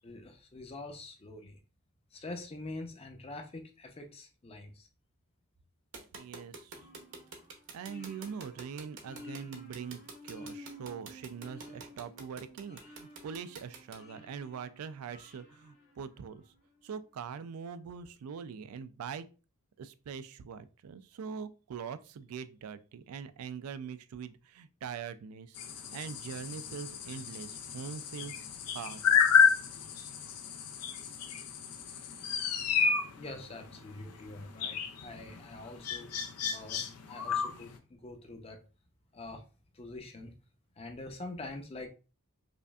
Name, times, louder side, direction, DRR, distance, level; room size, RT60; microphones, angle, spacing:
voice 1, 0.0-1.6 2.1-4.9 33.2-36.1 36.5-38.6 39.1-39.4 39.7-40.3 40.8-41.9, left 2 dB, 25° left, 0.6 m, -45 dB
sound 1, 5.9-14.0, right 4 dB, 55° right, 0.8 m, -47 dB
voice 2, 6.1-6.8 7.7-16.4 16.8-19.3 19.8-25.6 25.9-28.4 28.7-29.0, right 6 dB, 75° right, 0.4 m, -43 dB
sound 2, 6.7-16.5, equal, 60° left, 1.7 m, -52 dB
sound 3, 25.6-37.8, left 6 dB, 90° left, 0.5 m, -31 dB
5.1 x 2.5 x 2.3 m
head